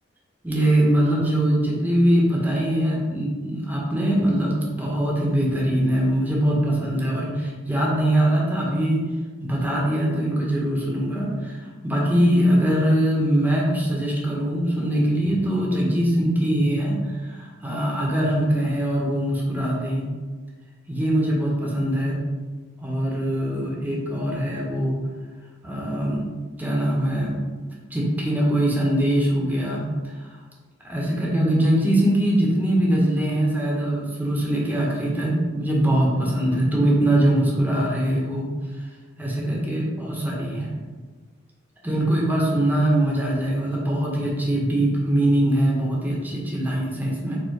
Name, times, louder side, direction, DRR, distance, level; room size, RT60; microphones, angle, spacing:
voice 1, 0.4-9.0 9.4-20.0 20.9-22.2 22.8-25.0 25.6-26.2 26.6-27.4 27.9-30.3 30.8-38.5 39.2-40.8 41.8-47.4, right 1 dB, 10° right, -4 dB, 0.7 m, -22 dB
4.4 x 2.0 x 4.5 m, 1.4 s
head